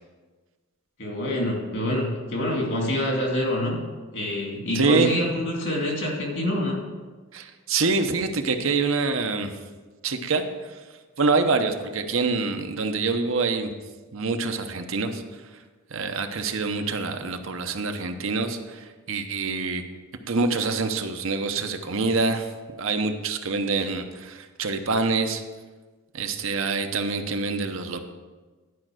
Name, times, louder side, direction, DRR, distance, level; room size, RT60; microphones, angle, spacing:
voice 1, 1.0-3.8 4.1-6.8, left 1 dB, 55° left, 0 dB, 2.4 m, -26 dB
voice 2, 4.7-5.1 7.3-9.5 10.0-10.8 11.2-13.7 14.1-15.2 15.9-19.8 20.2-22.5 22.8-25.4 26.1-28.0, right 4 dB, 65° right, 6 dB, 0.8 m, -26 dB
11.5 x 5.3 x 6.2 m, 1.3 s
head